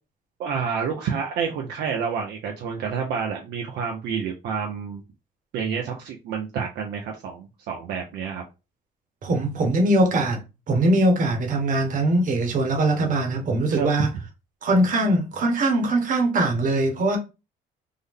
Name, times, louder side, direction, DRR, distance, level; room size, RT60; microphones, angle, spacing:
voice 1, 0.4-5.0 5.5-8.4 13.7-13.9, right 6 dB, 75° right, 0.7 m, -29 dB
voice 2, 9.2-10.4 10.7-14.1 14.6-17.2, right 1 dB, 50° right, 1.3 m, -21 dB
3.6 x 2.1 x 3.6 m
cardioid pair, 110°, 17 cm